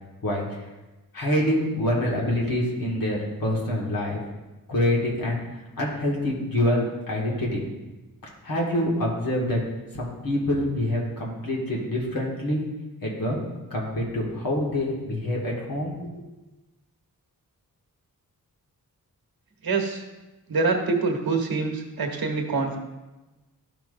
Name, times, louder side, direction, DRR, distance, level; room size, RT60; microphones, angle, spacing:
voice 1, 0.2-0.6 1.1-4.2 4.7-5.4 5.8-7.6 8.4-9.6 9.9-12.6 13.0-13.4 13.7-16.3, left 1 dB, 70° left, -3 dB, 1.8 m, -26 dB
voice 2, 19.6-20.0 20.5-22.8, right 4 dB, 80° right, 2 dB, 1.2 m, -25 dB
12.5 x 5.8 x 2.5 m, 1.1 s
wide cardioid pair, 145°, 36 cm